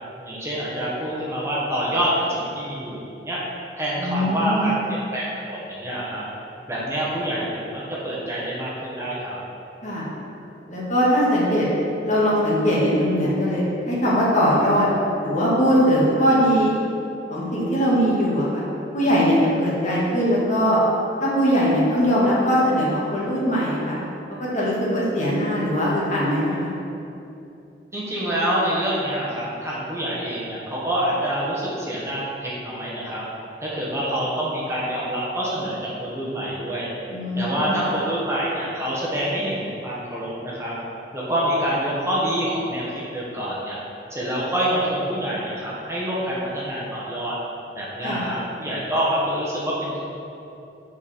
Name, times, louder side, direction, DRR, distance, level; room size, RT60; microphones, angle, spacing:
voice 1, 0.2-3.0 3.2-3.4 3.8-6.2 6.7-9.4 27.9-33.2 33.6-36.9 37.3-40.7 41.1-43.8 44.1-47.3 47.7-50.0, right 1 dB, 15° right, -6 dB, 1.3 m, -26 dB
voice 2, 4.0-4.8 9.8-10.0 10.7-11.7 12.0-14.9 15.2-16.7 17.3-18.6 18.9-20.8 21.2-24.0 24.4-26.7 37.1-38.0 48.0-48.3, equal, 45° left, -6 dB, 1.8 m, -21 dB
8.1 x 5.2 x 4.3 m, 2.8 s
head